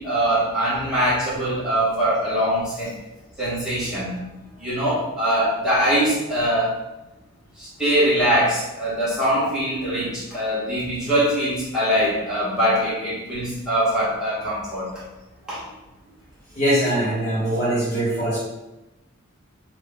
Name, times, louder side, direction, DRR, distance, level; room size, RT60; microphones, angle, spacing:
voice 1, 0.0-2.9 3.4-4.2 4.6-6.8 7.6-15.0 15.5-15.6, equal, 5° right, -11 dB, 1.2 m, -22 dB
voice 2, 16.5-18.4, right 1 dB, 30° left, -9 dB, 1.1 m, -22 dB
3.5 x 2.2 x 3.6 m, 1.0 s
head